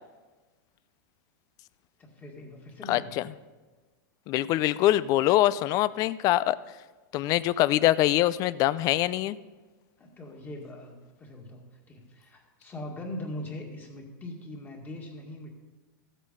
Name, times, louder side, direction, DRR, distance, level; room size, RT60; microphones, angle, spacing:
voice 1, 2.0-3.1 10.0-15.5, left 1 dB, 15° left, 1 dB, 2.0 m, -41 dB
voice 2, 2.9-3.2 4.3-6.6 7.1-9.4, left 15 dB, 30° left, 18 dB, 0.4 m, -24 dB
14.5 x 8.1 x 5.5 m, 1.3 s
supercardioid pair, 150°, 12 cm